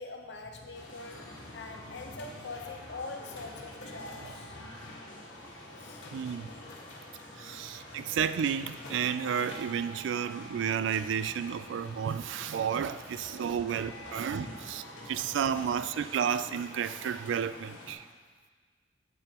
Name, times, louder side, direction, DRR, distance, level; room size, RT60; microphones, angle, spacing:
voice 1, 0.0-5.1 5.8-6.1 7.3-7.7 13.6-14.0 14.4-14.6 15.0-15.8, left 3 dB, 70° left, 3 dB, 0.9 m, -44 dB
sound 1, 0.7-17.9, left 1 dB, 85° left, 1.4 m, -46 dB
voice 2, 6.1-6.5 7.4-18.1, right 8 dB, 85° right, 13 dB, 0.3 m, -32 dB
8.6 x 7.7 x 2.9 m, 1.5 s
head